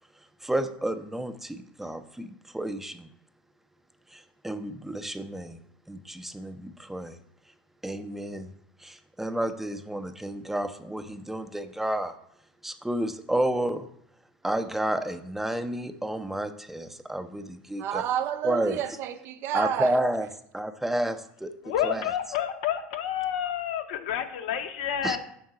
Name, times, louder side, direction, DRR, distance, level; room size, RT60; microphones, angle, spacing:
voice 1, 0.4-3.1 4.1-5.6 5.9-7.2 7.8-8.5 8.8-12.1 12.6-13.9 14.4-18.0 18.4-18.8 19.5-20.3 20.5-21.5 21.8-22.0 25.0-25.2, right 1 dB, 5° right, 0.5 m, -31 dB
voice 2, 17.8-20.0, right 9 dB, 55° right, 0.5 m, -30 dB
voice 3, 21.6-25.2, left 9 dB, 75° left, 0.6 m, -29 dB
5.4 x 3.7 x 4.7 m
hypercardioid pair, 85°, 5 cm